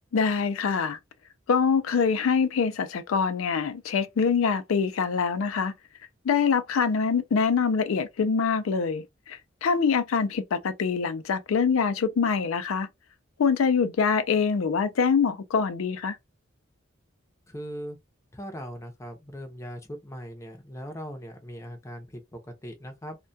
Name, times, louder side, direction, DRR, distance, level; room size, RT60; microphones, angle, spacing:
voice 1, 0.1-1.0 1.5-5.7 6.2-12.9 13.4-16.2, left 5 dB, 90° left, 0.4 m, -24 dB
voice 2, 17.5-18.0 18.3-22.2 22.5-23.2, equal, 15° left, 0.6 m, -39 dB
2.2 x 2.2 x 2.6 m
head